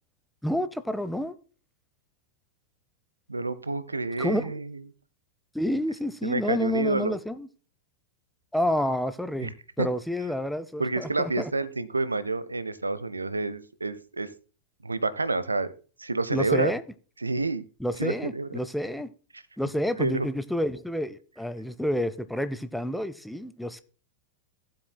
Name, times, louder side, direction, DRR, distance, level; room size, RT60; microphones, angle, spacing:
voice 1, 0.4-1.3 4.2-4.6 5.5-7.5 8.5-9.5 9.8-11.5 16.3-16.8 17.8-19.1 19.6-23.8, left 1 dB, ahead, 0.6 m, -29 dB
voice 2, 3.3-4.8 6.2-7.2 9.4-9.9 10.8-14.3 14.8-15.7 16.0-16.7 17.2-17.6 18.0-18.5 20.0-20.3, right 3 dB, 80° right, 0.6 m, -29 dB
15.5 x 7.6 x 2.2 m
figure-of-eight pair, 90°, 0 cm